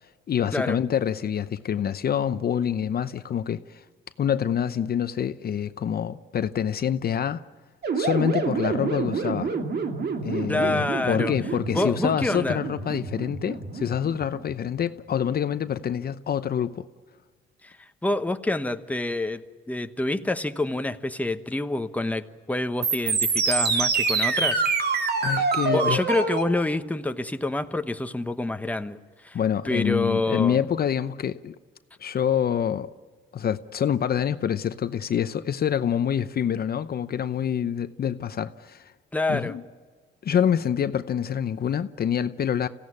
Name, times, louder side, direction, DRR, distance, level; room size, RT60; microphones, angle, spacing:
voice 1, 0.3-3.8 4.2-7.4 7.9-9.5 10.2-16.9 25.2-26.0 29.3-31.5 32.0-32.9 33.3-38.9 39.3-39.6 40.2-42.7, left 9 dB, 50° left, 0.8 m, -26 dB
sound 1, 7.8-14.6 22.8-26.4, right 4 dB, 55° right, 2.5 m, -27 dB
voice 2, 10.5-11.3 11.7-12.6 17.6-24.6 25.6-29.0 29.2-29.4 29.6-30.6 39.1-39.6, left 2 dB, 5° left, 1.1 m, -27 dB
26.5 x 16.5 x 9.8 m
cardioid pair, 90°, 20 cm